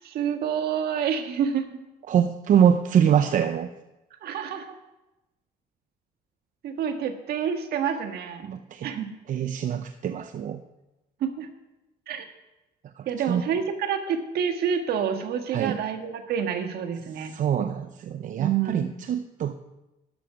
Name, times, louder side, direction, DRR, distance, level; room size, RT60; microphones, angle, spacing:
voice 1, 0.0-1.7 4.2-4.8 6.6-8.4 8.8-9.1 11.2-11.5 12.1-12.2 13.0-17.3 18.4-18.9, right 8 dB, 70° right, 6 dB, 1.6 m, -28 dB
voice 2, 2.1-3.7 8.4-8.9 9.3-10.6 13.0-13.4 15.5-15.8 17.2-19.5, right 8 dB, 50° right, 9 dB, 0.6 m, -24 dB
12.0 x 10.5 x 6.0 m, 1.0 s
cardioid pair, 110°, 17 cm